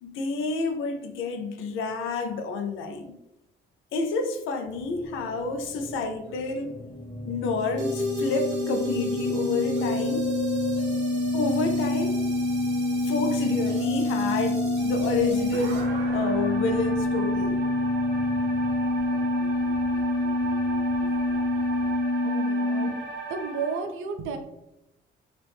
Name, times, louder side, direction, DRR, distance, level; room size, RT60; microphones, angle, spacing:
voice 1, 0.0-3.1 3.9-6.7 7.3-10.3 11.3-12.2 13.0-17.6, left 3 dB, 85° left, 5 dB, 0.5 m, -29 dB
sound 1, 4.6-22.0, equal, 10° right, 1.0 m, -42 dB
sound 2, 6.7-22.9, left 1 dB, 35° left, 1.0 m, -27 dB
sound 3, 7.8-23.8, equal, 60° right, 0.8 m, -35 dB
voice 2, 22.2-23.0 23.3-24.4, right 5 dB, 90° right, 5 dB, 0.5 m, -32 dB
3.1 x 2.4 x 3.4 m, 0.87 s
cardioid pair, 90°, 20 cm